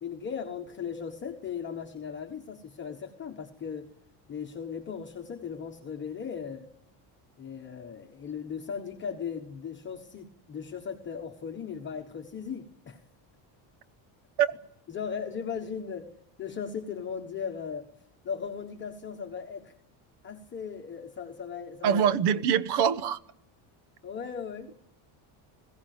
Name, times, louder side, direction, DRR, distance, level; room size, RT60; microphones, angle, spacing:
voice 1, 0.0-3.9 4.3-6.7 7.4-13.0 14.9-16.1 16.4-17.9 18.2-19.7 20.2-22.0 24.0-24.7, left 7 dB, 25° left, 2 dB, 1.2 m, -37 dB
voice 2, 21.8-23.2, right 8 dB, 55° right, 15 dB, 1.1 m, -24 dB
21.5 x 16.0 x 9.4 m, 0.76 s
cardioid pair, 180°, 49 cm